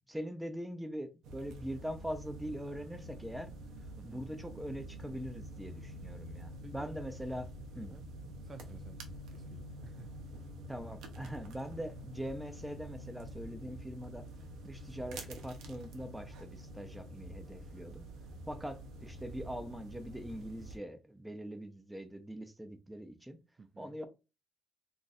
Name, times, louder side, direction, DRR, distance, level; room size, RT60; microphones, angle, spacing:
voice 1, 0.1-3.5 4.0-7.5 7.7-8.0 10.7-14.3 14.6-18.0 18.5-23.4 23.8-24.1, equal, 10° right, 0.7 m, -42 dB
sound 1, 1.2-20.8, equal, 85° right, 0.7 m, -47 dB
voice 2, 4.0-4.3 6.6-6.9 7.8-8.0 8.4-9.0 9.3-10.1 23.6-24.0, right 4 dB, 35° right, 0.3 m, -54 dB
2.5 x 2.4 x 4.1 m
cardioid pair, 90°, 0 cm